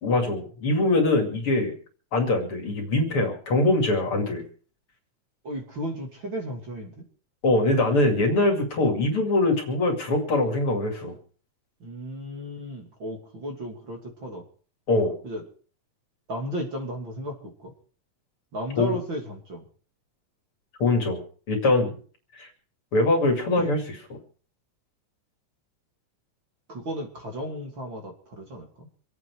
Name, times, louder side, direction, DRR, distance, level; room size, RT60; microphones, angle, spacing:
voice 1, 0.0-1.7 2.1-4.4 7.4-11.2 14.9-15.1 18.8-19.0 20.8-21.2 21.5-21.9 22.3-22.5 22.9-24.2, left 2 dB, 45° left, 3 dB, 3.3 m, -23 dB
voice 2, 5.4-7.1 11.8-14.4 15.2-15.4 16.3-17.7 18.5-19.6 23.6-23.7 26.7-28.9, equal, 40° right, 1 dB, 3.3 m, -34 dB
26.5 x 9.1 x 4.7 m, 0.42 s
omnidirectional pair, 3.5 m